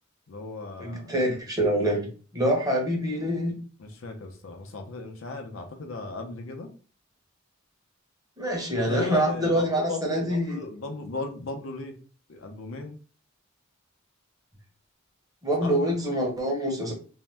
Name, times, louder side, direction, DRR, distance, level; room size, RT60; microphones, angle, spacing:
voice 1, 0.3-1.1 3.8-6.7 8.7-12.0 12.3-13.0 15.6-15.7, left 3 dB, 70° left, 4 dB, 0.6 m, -36 dB
voice 2, 0.8-2.1 2.3-3.6 8.4-10.6 15.4-16.9, right 1 dB, 20° right, -1 dB, 0.9 m, -25 dB
2.6 x 2.1 x 3.3 m, 0.38 s
head